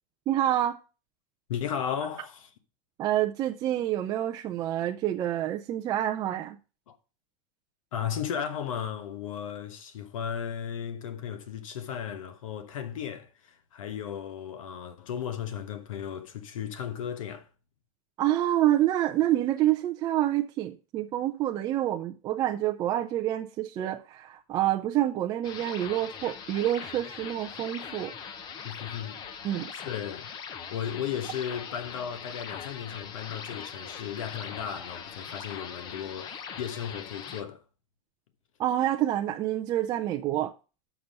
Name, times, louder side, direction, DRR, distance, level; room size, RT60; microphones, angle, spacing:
voice 1, 0.3-0.8 3.0-6.6 18.2-28.1 29.4-29.7 38.6-40.5, right 13 dB, 25° right, 0.5 m, -27 dB
voice 2, 1.5-2.5 6.9-7.0 7.9-17.5 28.6-29.2 29.7-30.3 30.7-37.6, left 8 dB, 80° left, 1.2 m, -35 dB
sound 1, 25.4-37.4, left 7 dB, 25° left, 0.7 m, -41 dB
6.7 x 5.9 x 5.3 m
supercardioid pair, 155°, 17 cm